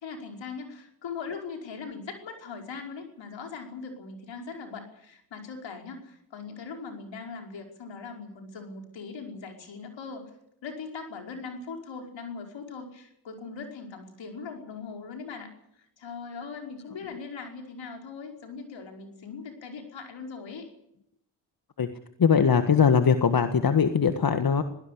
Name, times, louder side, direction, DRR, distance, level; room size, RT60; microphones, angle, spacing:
voice 1, 0.0-10.2 10.6-15.5 15.8-20.7, left 5 dB, 70° left, 3 dB, 5.2 m, -40 dB
voice 2, 22.2-24.6, left 6 dB, 50° left, 8 dB, 1.7 m, -21 dB
21.0 x 17.5 x 8.6 m, 0.76 s
supercardioid pair, 55°, 46 cm